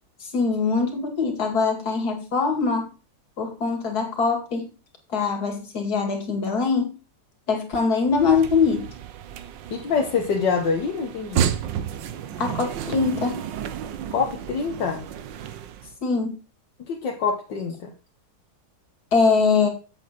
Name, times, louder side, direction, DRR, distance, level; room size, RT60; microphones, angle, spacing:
voice 1, 0.2-2.9 3.4-4.7 5.1-6.9 7.5-8.8 12.4-13.4 16.0-16.4 19.1-19.7, left 4 dB, 60° left, 3 dB, 2.9 m, -22 dB
sound 1, 8.1-15.9, right 9 dB, 90° right, 1.5 m, -32 dB
voice 2, 9.7-11.5 14.1-15.0 16.8-17.9, left 5 dB, 75° left, 0 dB, 1.9 m, -25 dB
8.0 x 7.8 x 4.3 m, 0.33 s
omnidirectional pair, 1.9 m